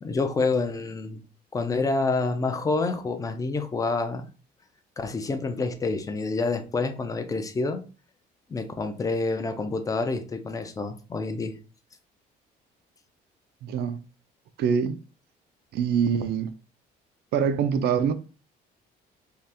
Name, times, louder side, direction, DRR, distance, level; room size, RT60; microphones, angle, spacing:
voice 1, 0.0-1.2 1.5-4.3 5.0-7.9 8.5-11.6, left 3 dB, 20° left, 0.5 m, -28 dB
voice 2, 13.6-14.0 14.6-15.0 15.7-16.5 17.3-18.1, right 7 dB, 70° right, 0.5 m, -24 dB
2.8 x 2.4 x 3.4 m
cardioid pair, 110°, 17 cm